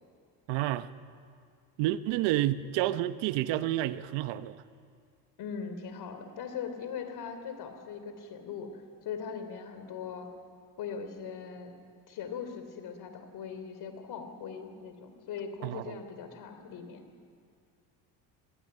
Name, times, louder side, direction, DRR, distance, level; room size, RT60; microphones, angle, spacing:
voice 1, 0.5-0.9 1.8-4.6 15.6-16.0, right 14 dB, 80° right, 14 dB, 0.9 m, -29 dB
voice 2, 5.4-8.7 9.0-10.3 10.8-11.7 12.1-17.0, left 6 dB, 60° left, 7 dB, 3.3 m, -40 dB
20.5 x 16.5 x 8.8 m, 2.2 s
supercardioid pair, 100°, 44 cm